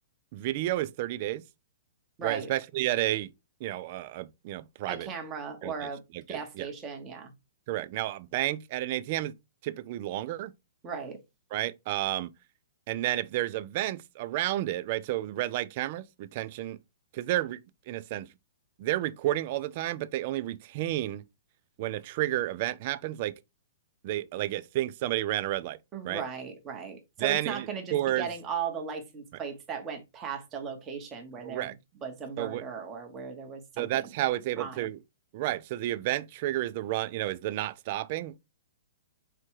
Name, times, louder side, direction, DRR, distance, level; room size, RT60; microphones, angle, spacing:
voice 1, 0.3-1.4 2.2-3.3 3.6-5.1 5.6-6.7 7.7-9.3 9.6-10.5 11.5-12.3 12.9-16.8 17.1-17.6 17.9-18.3 18.8-21.2 21.8-23.3 24.0-25.8 26.0-26.2 27.2-28.3 31.4-31.7 32.4-32.6 33.8-35.0 35.3-38.4, right 15 dB, 40° right, 0.3 m, -31 dB
voice 2, 2.2-2.5 4.9-6.0 6.3-7.3 10.8-11.2 25.9-31.7 32.0-34.1 34.6-34.9, right 6 dB, 20° right, 1.0 m, -37 dB
4.4 x 2.3 x 4.6 m
hypercardioid pair, 155°, 0 cm